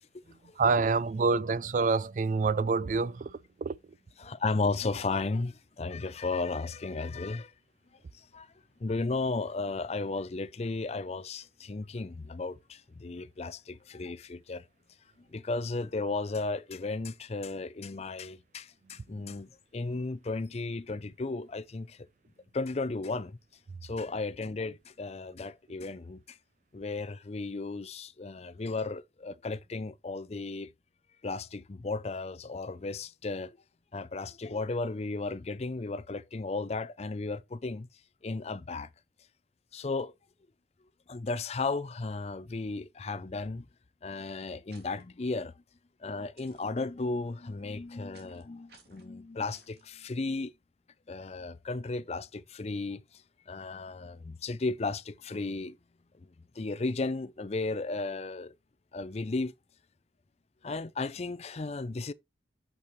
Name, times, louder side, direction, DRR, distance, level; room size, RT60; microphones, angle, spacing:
voice 1, 0.6-3.8, right 4 dB, 45° right, 0.3 m, -27 dB
voice 2, 4.2-7.5 8.3-8.5 8.8-14.6 15.3-22.0 22.5-23.4 23.8-26.4 26.7-30.7 31.2-33.6 33.9-37.9 38.2-38.9 39.7-40.1 41.1-43.6 44.0-45.5 46.0-50.5 51.1-53.0 53.5-55.8 56.6-58.5 58.9-59.5 60.6-62.1, left 3 dB, 35° left, 0.5 m, -34 dB
sound 1, 44.7-45.0 46.4-46.7 48.1-48.4 48.7-49.1 49.5-49.8, right 4 dB, 65° right, 2.8 m, -59 dB
8.3 x 6.8 x 3.1 m
head